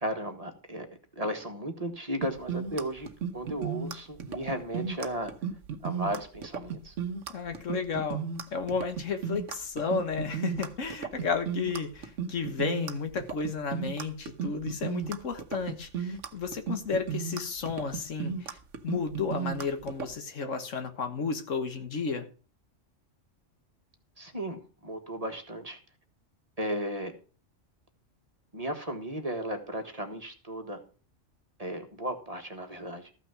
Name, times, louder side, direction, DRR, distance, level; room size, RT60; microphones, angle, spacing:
voice 1, 0.0-0.9 1.1-3.1 3.3-5.3 5.8-6.9 24.2-25.8 26.6-27.1 28.5-30.8 31.6-33.1, right 1 dB, 30° right, 1.6 m, -35 dB
sound 1, 2.2-20.1, right 7 dB, 75° right, 1.3 m, -35 dB
voice 2, 7.3-18.6 18.8-22.3, left 5 dB, 80° left, 1.7 m, -33 dB
14.0 x 6.1 x 6.2 m
omnidirectional pair, 1.3 m